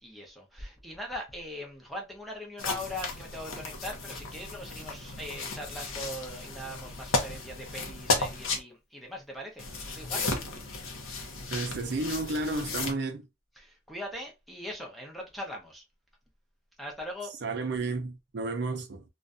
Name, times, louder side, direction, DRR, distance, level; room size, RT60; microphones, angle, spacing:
voice 1, 0.0-10.3 13.5-15.8 16.8-17.3, left 1 dB, ahead, 0.6 m, -41 dB
sound 1, 2.6-8.6 9.6-12.9, left 3 dB, 85° left, 0.7 m, -34 dB
voice 2, 11.5-13.3 17.4-19.0, right 3 dB, 55° right, 0.5 m, -32 dB
2.5 x 2.2 x 2.5 m
head